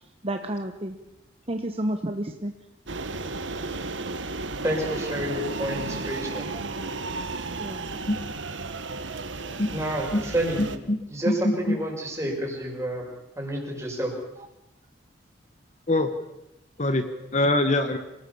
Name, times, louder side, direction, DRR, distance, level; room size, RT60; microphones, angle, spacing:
voice 1, 0.2-1.0 1.5-2.5 6.5-6.6 7.6-8.0 9.1-9.2 9.5-9.6 17.1-17.2, right 1 dB, 30° right, 5 dB, 1.1 m, -31 dB
sound 1, 2.9-10.8, right 3 dB, 85° right, 1.5 m, -33 dB
voice 2, 4.6-6.5 9.5-10.7 11.1-13.1 13.4-14.1, right 1 dB, 15° right, -1 dB, 6.1 m, -29 dB
voice 3, 10.6-11.0 11.3-11.8 15.9-16.1 16.8-17.0 17.3-18.0, left 1 dB, 40° left, 8 dB, 1.5 m, -23 dB
27.0 x 17.5 x 7.1 m, 0.90 s
head